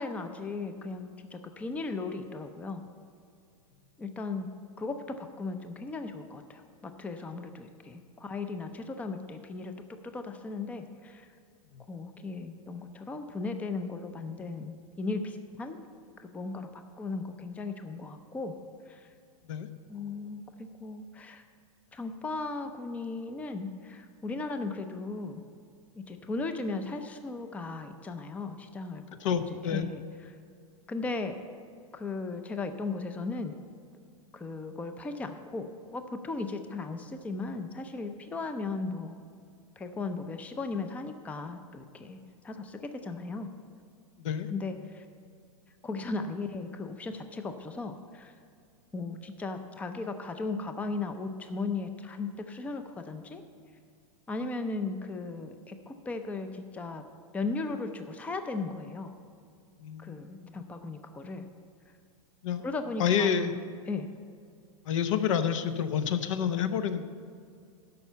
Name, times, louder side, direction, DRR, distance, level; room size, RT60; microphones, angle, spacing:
voice 1, 0.0-2.8 4.0-4.5 4.8-11.3 11.9-15.8 16.2-18.5 18.8-19.1 19.9-21.4 21.9-25.4 26.0-29.0 29.7-30.0 30.3-30.4 30.9-31.4 31.9-33.5 34.3-39.2 39.8-43.5 44.5-45.0 45.8-48.3 48.9-53.4 54.3-57.0 57.3-59.2 60.0-61.5 62.6-64.1, left 3 dB, 10° left, 7 dB, 0.5 m, -36 dB
voice 2, 29.2-29.9 44.2-44.5 59.8-60.6 62.4-62.6 63.0-63.5 64.8-67.0, left 8 dB, 60° left, 10 dB, 0.8 m, -29 dB
12.0 x 5.5 x 6.9 m, 2.3 s
hypercardioid pair, 140°, 18 cm